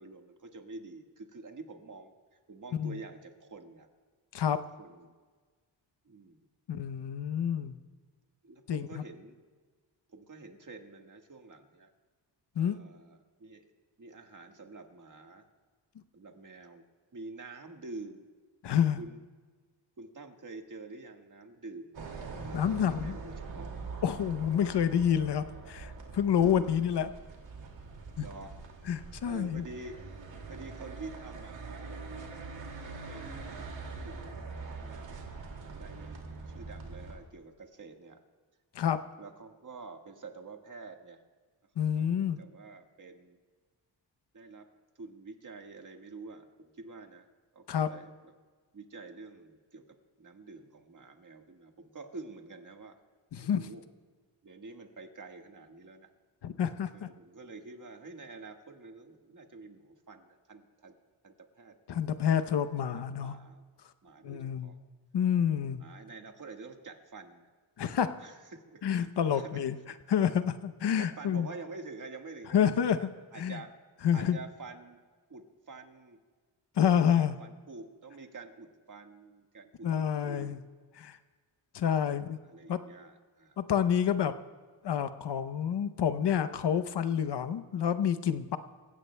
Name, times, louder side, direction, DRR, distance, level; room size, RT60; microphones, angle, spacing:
voice 1, 0.0-3.9 4.8-5.1 6.0-6.5 8.4-9.4 10.1-11.9 12.5-13.6 14.0-15.4 16.1-16.8 17.1-18.3 19.0-19.2 20.0-21.9 22.3-23.7 26.3-26.9 28.1-28.5 29.2-30.0 30.5-32.1 32.8-34.4 34.8-35.1 35.6-36.2 36.5-38.2 39.2-41.2 41.9-43.4 44.3-44.7 44.9-47.2 47.5-48.3 48.7-49.8 50.2-53.0 53.4-53.8 54.4-56.1 56.9-61.0 61.2-61.8 62.6-63.6 64.0-64.8 65.8-67.5 68.2-69.6 71.0-72.6 73.0-73.7 74.1-75.0 75.3-76.2 77.0-80.6 82.4-83.6, right 3 dB, 45° right, 4 dB, 1.6 m, -48 dB
voice 2, 6.7-7.8 8.7-9.0 12.6-12.8 18.6-19.0 22.5-23.2 24.0-27.1 28.2-28.3 28.9-29.6 38.7-39.0 41.8-42.4 47.7-47.9 53.3-53.7 56.4-57.1 61.9-63.3 64.2-64.7 65.1-65.8 67.8-68.1 68.8-69.8 70.1-71.5 72.5-73.1 73.4-73.6 74.0-74.4 76.8-77.4 79.8-80.6 81.0-81.2 81.7-82.4 82.7-82.8 83.6-84.4 84.8-88.6, left 8 dB, 65° left, 12 dB, 0.8 m, -28 dB
sound 1, 21.9-37.2, right 4 dB, 85° right, 2.3 m, -43 dB
27.5 x 16.5 x 2.2 m, 1.5 s
cardioid pair, 80°, 44 cm